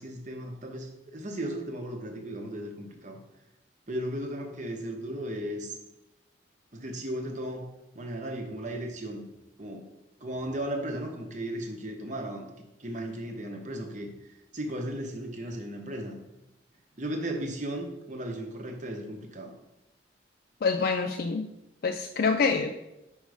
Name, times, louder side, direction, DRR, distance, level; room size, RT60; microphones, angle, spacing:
voice 1, 0.0-3.2 3.9-5.8 6.7-7.7 7.9-9.3 9.6-9.9 10.2-12.5 12.8-14.1 14.5-16.1 17.0-19.5, right 1 dB, 40° right, 3 dB, 1.0 m, -35 dB
voice 2, 20.6-21.5 21.8-22.7, left 4 dB, 50° left, 5 dB, 0.4 m, -26 dB
5.3 x 5.2 x 4.8 m, 0.91 s
head